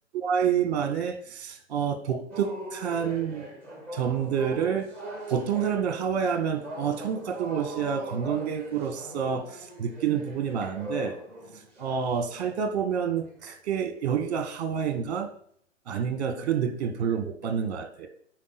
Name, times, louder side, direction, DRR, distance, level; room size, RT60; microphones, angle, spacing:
voice 1, 0.1-3.4 3.9-4.9 5.3-11.2 11.8-15.3 15.9-18.1, right 7 dB, 30° right, 9 dB, 1.1 m, -28 dB
sound 1, 2.3-12.7 13.2-13.4 14.0-14.4 14.7-15.0, right 1 dB, 5° left, 1.4 m, -41 dB
9.2 x 4.7 x 4.0 m, 0.63 s
hypercardioid pair, 145°, 38 cm